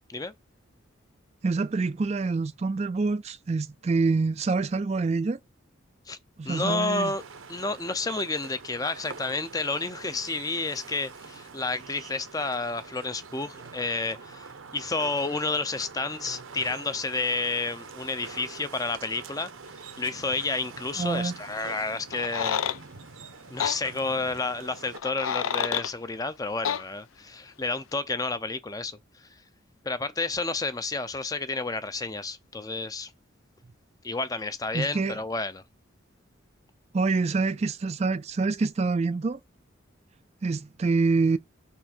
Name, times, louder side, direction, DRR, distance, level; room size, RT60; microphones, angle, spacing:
voice 1, 1.4-5.4 6.4-7.1 21.0-21.4 34.7-35.2 36.9-39.4 40.4-41.4, right 4 dB, 30° right, 0.3 m, -26 dB
voice 2, 6.4-7.2 7.5-14.5 14.7-19.5 20.0-22.6 23.5-29.3 29.8-33.1 34.0-35.6, left 3 dB, 20° left, 0.5 m, -30 dB
sound 1, 6.9-25.0, right 5 dB, 85° right, 1.0 m, -45 dB
sound 2, 22.1-22.8 23.6-23.8 24.9-25.9 26.6-26.8, left 8 dB, 90° left, 0.4 m, -28 dB
5.8 x 4.4 x 4.4 m
head